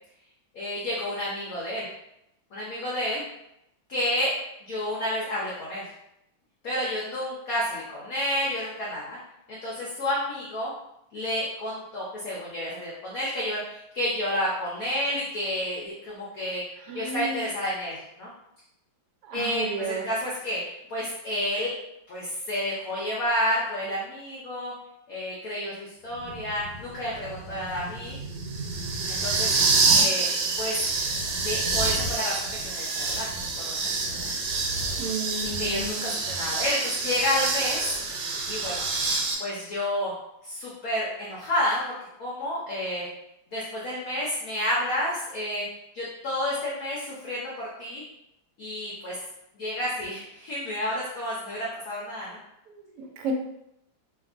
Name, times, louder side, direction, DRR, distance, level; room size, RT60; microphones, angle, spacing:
voice 1, 0.5-1.9 2.5-3.2 3.9-5.9 6.6-9.2 9.5-10.7 11.1-16.6 16.9-18.3 19.3-21.7 22.1-24.7 25.1-28.2 29.1-29.5 30.0-30.3 30.6-30.8 31.4-34.3 35.4-37.9 38.5-38.8 39.4-40.1 40.4-41.9 42.2-43.1 43.5-45.6 45.9-48.0 48.6-49.2 49.5-52.4, left 1 dB, 70° left, -6 dB, 0.9 m, -30 dB
voice 2, 16.9-17.4 19.2-20.1 35.0-36.1 52.7-53.3, right 3 dB, 75° right, 2 dB, 0.9 m, -33 dB
sound 1, 26.2-39.3, right 4 dB, 90° right, 1.4 m, -27 dB
2.9 x 2.5 x 2.4 m, 0.82 s
omnidirectional pair, 2.2 m